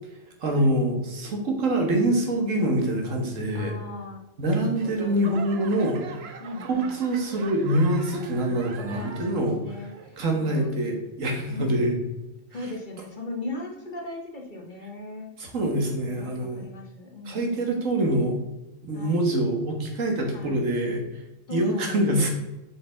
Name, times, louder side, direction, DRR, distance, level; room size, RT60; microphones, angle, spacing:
voice 1, 0.4-3.7 4.4-6.0 6.7-9.6 10.2-12.0 15.4-16.6 17.3-18.4 18.8-21.2 21.5-22.3, right 1 dB, 90° right, 2 dB, 1.8 m, -25 dB
voice 2, 3.5-4.2 4.5-5.2 6.4-7.0 8.3-10.8 11.5-11.9 12.5-15.3 16.0-17.9 18.9-19.3 20.3-20.7 21.5-22.3, left 2 dB, 40° left, 1 dB, 1.3 m, -39 dB
Laughter / Clapping / Crowd, 4.7-9.5 9.9-10.4 11.0-11.1, right 6 dB, 60° right, 1.0 m, -42 dB
7.5 x 5.7 x 3.5 m, 1.0 s
omnidirectional pair, 1.3 m